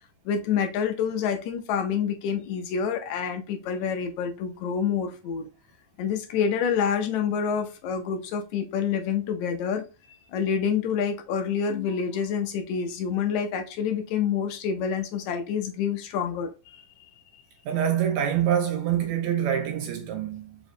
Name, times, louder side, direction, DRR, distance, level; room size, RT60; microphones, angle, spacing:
voice 1, 0.3-5.5 6.0-9.8 10.3-17.1, left 7 dB, 80° left, 1.9 m, -27 dB
voice 2, 17.7-20.6, right 9 dB, 80° right, 2.0 m, -25 dB
4.9 x 3.0 x 2.6 m
omnidirectional pair, 3.4 m